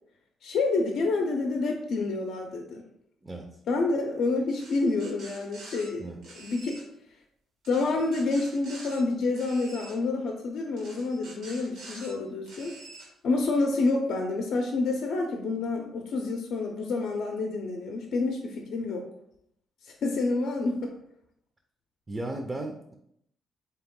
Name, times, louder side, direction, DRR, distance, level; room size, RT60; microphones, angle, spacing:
voice 1, 0.4-2.8 3.7-6.1 6.4-6.8 7.7-12.8 13.2-19.1 19.8-20.9, left 3 dB, 70° left, 2 dB, 0.5 m, -28 dB
sound 1, 4.5-5.9 6.2-6.8 7.6-9.0 9.3-10.0 10.8-12.1 12.5-13.1, right 3 dB, 85° right, 1.5 m, -46 dB
voice 2, 22.1-22.9, right 2 dB, 20° right, 3 dB, 0.5 m, -35 dB
3.8 x 2.9 x 3.6 m, 0.73 s
cardioid pair, 90°, 0 cm